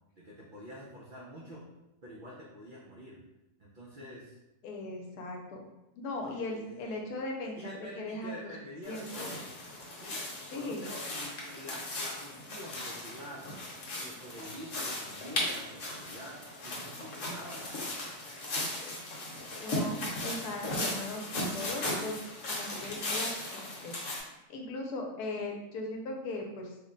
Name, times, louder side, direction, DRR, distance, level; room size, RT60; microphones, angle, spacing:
voice 1, 0.2-1.6 2.0-3.2 3.6-4.4 6.2-6.8 7.6-9.5 10.0-13.7 14.0-18.0, equal, 75° right, -5 dB, 0.4 m, -47 dB
voice 2, 4.6-5.6 6.0-8.4 8.9-9.1 10.5-10.9 18.8-18.9 19.6-20.0 20.2-22.2 22.5-26.7, left 2 dB, 80° left, 1 dB, 1.2 m, -38 dB
sound 1, 8.8-24.2, left 1 dB, 55° left, 1.1 m, -37 dB
3.2 x 2.1 x 3.7 m, 0.95 s
omnidirectional pair, 1.6 m